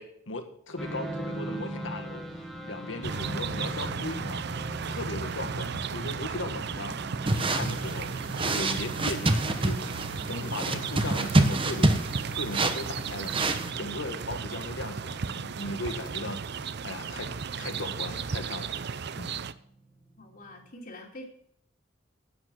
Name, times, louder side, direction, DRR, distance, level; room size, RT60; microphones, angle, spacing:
voice 1, 0.0-2.2 2.6-4.4 4.9-8.1 8.4-9.9 10.3-13.4 13.8-16.4 16.8-17.3 17.6-18.8 19.2-19.4, left 2 dB, 85° left, 7 dB, 1.8 m, -37 dB
sound 1, 0.8-20.7, right 1 dB, ahead, 1.8 m, -42 dB
sound 2, 3.0-19.5, right 6 dB, 60° right, 0.6 m, -35 dB
sound 3, 7.3-13.7, right 2 dB, 30° right, 1.1 m, -27 dB
voice 2, 20.2-21.2, left 1 dB, 50° left, -1 dB, 2.7 m, -45 dB
11.5 x 9.0 x 6.3 m, 0.66 s
head